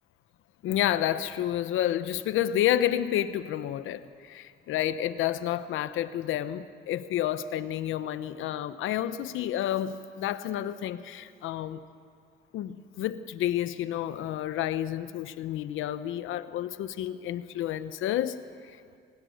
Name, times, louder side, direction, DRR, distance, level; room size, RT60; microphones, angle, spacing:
voice 1, 0.6-11.8 12.5-18.4, left 12 dB, 85° left, 13 dB, 0.9 m, -30 dB
27.0 x 20.5 x 6.5 m, 2.3 s
cardioid pair, 90°, 20 cm